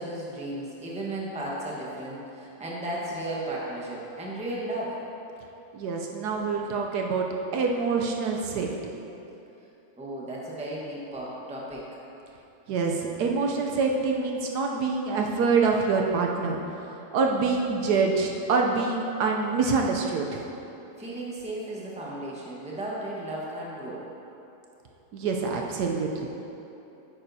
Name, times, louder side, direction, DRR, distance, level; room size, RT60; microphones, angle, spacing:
voice 1, 0.0-5.0 10.0-11.9 21.0-24.0, right 1 dB, 5° right, -5 dB, 0.9 m, -34 dB
voice 2, 5.7-7.3 7.5-8.9 12.7-16.6 16.9-20.5 25.1-26.3, right 4 dB, 75° right, 1 dB, 1.1 m, -26 dB
9.7 x 8.8 x 2.7 m, 3.0 s
omnidirectional pair, 1.9 m